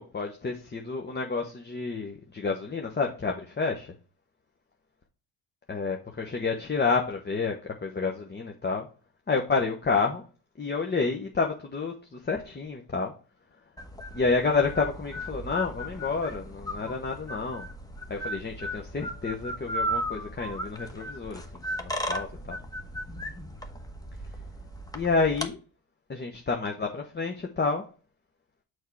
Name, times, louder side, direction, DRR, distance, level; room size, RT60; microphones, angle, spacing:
voice 1, 0.0-3.9 5.7-8.9 9.3-10.2 10.6-13.1 14.1-17.7 18.1-22.6 24.9-25.6 26.1-27.8, left 4 dB, 25° left, 1.0 m, -29 dB
sound 1, 13.8-25.5, equal, 10° left, 1.1 m, -36 dB
6.4 x 4.8 x 4.5 m
cardioid pair, 80°, 42 cm